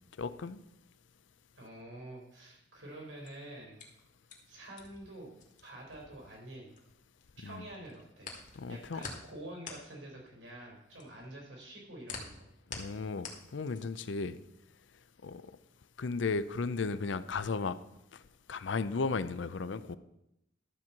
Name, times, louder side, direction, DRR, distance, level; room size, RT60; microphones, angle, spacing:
voice 1, 0.2-0.6 7.4-7.7 8.6-9.0 12.7-14.4 15.2-15.5 16.0-17.8 18.1-18.2 18.5-20.0, left 4 dB, 75° left, 0.5 m, -35 dB
voice 2, 1.6-3.8 4.5-5.3 5.6-6.7 7.4-8.3 8.7-12.5, right 1 dB, 80° right, 4.0 m, -47 dB
sound 1, 3.0-7.2 7.5-14.1, left 4 dB, 40° left, 1.7 m, -47 dB
12.0 x 4.6 x 7.2 m
head